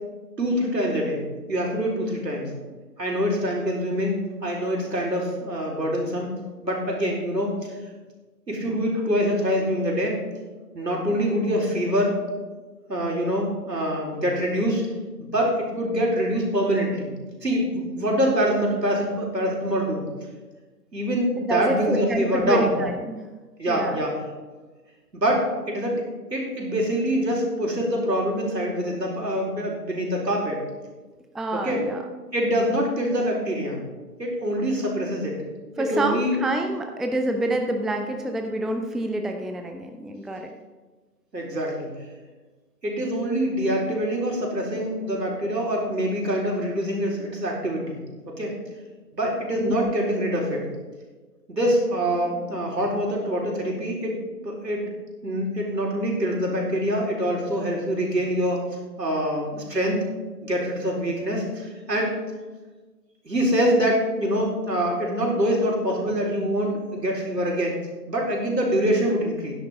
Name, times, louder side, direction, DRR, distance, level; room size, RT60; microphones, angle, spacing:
voice 1, 0.4-1.2 1.5-2.5 3.0-6.3 6.6-7.5 8.5-10.2 10.7-12.2 12.9-14.8 15.2-17.1 17.4-20.0 20.9-22.7 23.6-24.2 25.1-26.0 26.3-30.6 31.5-31.8 32.3-33.8 34.2-35.4 35.8-36.3 41.3-41.9 42.8-48.0 48.3-48.5 49.1-50.7 51.5-54.2 54.4-54.9 55.2-58.6 59.0-60.0 60.4-62.1 63.2-67.8 68.1-69.5, equal, 85° right, -1 dB, 4.1 m, -25 dB
voice 2, 21.5-23.2 23.7-23.9 31.3-32.0 35.8-40.5 49.6-49.9, right 1 dB, ahead, 4 dB, 0.4 m, -27 dB
12.0 x 10.5 x 3.6 m, 1.3 s
figure-of-eight pair, 170°, 49 cm